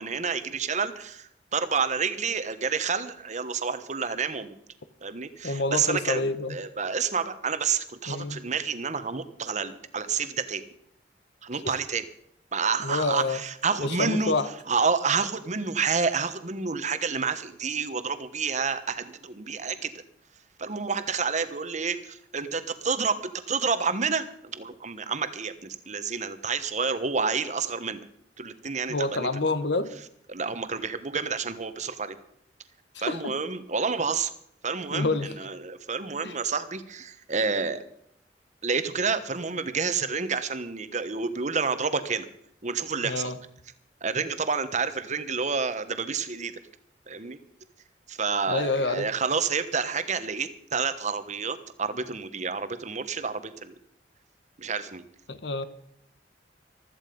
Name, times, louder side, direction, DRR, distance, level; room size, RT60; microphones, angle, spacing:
voice 1, 0.0-4.6 5.0-10.6 11.4-12.0 12.5-14.3 14.7-19.9 20.6-28.1 28.4-29.3 30.3-32.2 33.0-34.3 34.6-37.8 38.6-42.3 42.6-43.3 44.0-46.5 47.1-47.4 48.1-53.7 54.6-55.0, right 5 dB, 40° right, 12 dB, 1.2 m, -29 dB
voice 2, 5.4-6.6 8.1-8.4 11.5-11.8 12.8-13.4 13.8-14.5 28.9-29.9 32.9-33.3 34.9-35.3 36.2-36.3 43.0-43.4 48.5-49.1 55.3-55.7, left 3 dB, 70° left, 13 dB, 1.2 m, -28 dB
15.5 x 13.5 x 5.3 m, 0.69 s
head